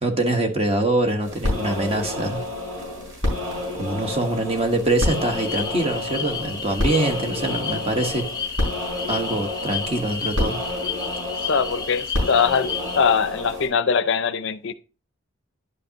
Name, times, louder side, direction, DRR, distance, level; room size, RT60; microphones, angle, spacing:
voice 1, 0.0-2.4 3.7-8.2 9.1-10.6, right 2 dB, 30° right, 1.1 m, -24 dB
sound 1, 1.2-13.7, left 1 dB, 80° right, 4.7 m, -29 dB
sound 2, 5.0-13.0, left 6 dB, 20° left, 0.8 m, -32 dB
voice 2, 11.5-14.7, left 6 dB, 60° left, 0.5 m, -22 dB
11.0 x 5.2 x 2.8 m
head